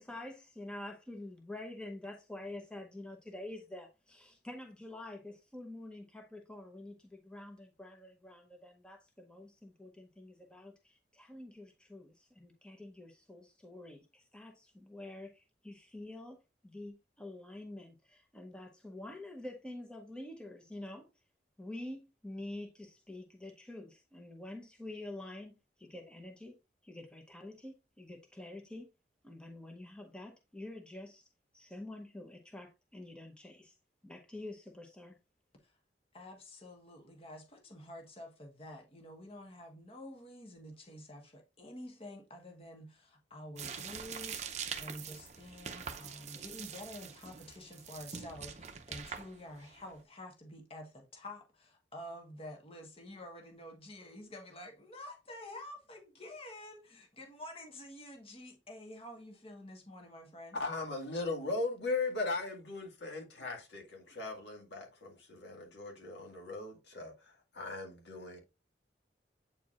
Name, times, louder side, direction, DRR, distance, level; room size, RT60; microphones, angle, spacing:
voice 1, 0.0-16.4 16.6-21.1 21.6-26.5 26.8-28.9 29.2-31.2 31.5-33.8 34.0-35.2, left 1 dB, 5° left, 0.8 m, -47 dB
voice 2, 36.1-60.6, left 1 dB, 35° left, 1.3 m, -49 dB
sound 1, 43.6-50.0, right 7 dB, 40° right, 0.6 m, -44 dB
voice 3, 60.5-68.4, left 3 dB, 75° left, 1.9 m, -38 dB
8.4 x 4.6 x 2.4 m
head